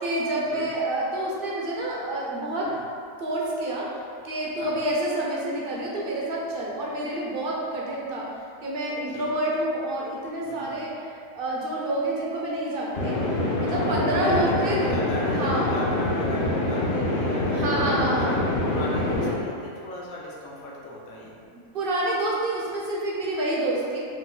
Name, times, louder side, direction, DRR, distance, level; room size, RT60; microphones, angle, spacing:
voice 1, 0.0-2.7 3.2-3.9 4.2-8.3 8.6-13.2 13.6-14.8 15.4-15.7 17.5-18.3 21.7-24.0, right 1 dB, 50° right, -4 dB, 0.8 m, -28 dB
voice 2, 4.6-4.9 9.1-9.3 10.4-10.9 13.1-18.4 18.7-21.4, left 1 dB, 90° left, -4 dB, 1.3 m, -37 dB
sound 1, 12.9-19.3, left 2 dB, 45° left, 0.9 m, -25 dB
4.8 x 2.7 x 3.7 m, 2.3 s
omnidirectional pair, 1.4 m